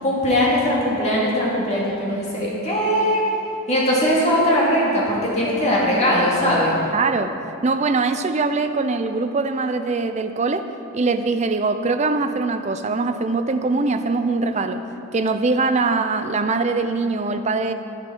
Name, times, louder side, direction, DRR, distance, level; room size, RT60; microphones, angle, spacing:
voice 1, 0.0-3.2 3.7-6.7, equal, 30° left, -6 dB, 2.1 m, -20 dB
voice 2, 6.9-7.3 7.6-10.7 10.9-14.8 15.1-17.7, right 3 dB, 30° right, 9 dB, 0.4 m, -22 dB
10.5 x 10.5 x 4.5 m, 2.9 s
head